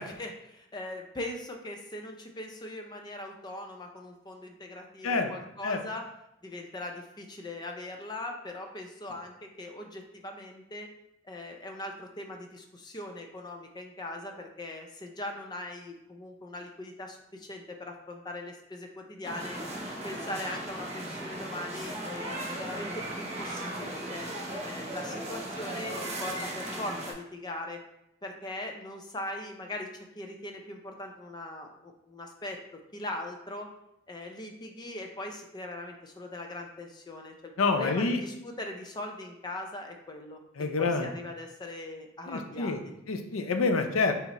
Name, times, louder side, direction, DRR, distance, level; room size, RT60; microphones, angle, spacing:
voice 1, 0.0-6.0 6.4-10.9 11.2-19.6 20.0-24.2 24.6-27.8 28.2-33.7 34.1-42.7, left 1 dB, 20° left, 3 dB, 0.5 m, -40 dB
sound 1, 19.2-27.1, right 1 dB, 35° right, 0.7 m, -37 dB
voice 2, 37.6-38.2 40.6-41.1 42.3-42.8 43.1-44.1, left 3 dB, 90° left, 6 dB, 0.5 m, -27 dB
5.7 x 2.0 x 4.1 m, 0.81 s
head